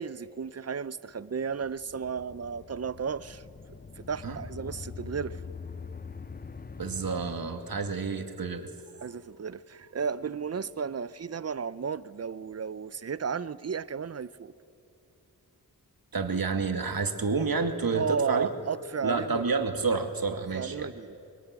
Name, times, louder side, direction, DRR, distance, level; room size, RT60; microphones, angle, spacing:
voice 1, 0.0-3.4 4.0-5.4 9.0-14.5 17.9-19.4 20.5-21.2, right 6 dB, 40° right, 18 dB, 0.7 m, -33 dB
sound 1, 1.5-8.3, left 5 dB, 25° left, 0.7 m, -44 dB
voice 2, 6.8-8.7 16.1-18.5 19.0-20.9, right 4 dB, 65° right, 6 dB, 2.2 m, -29 dB
22.5 x 22.5 x 9.6 m, 2.9 s
wide cardioid pair, 70°, 38 cm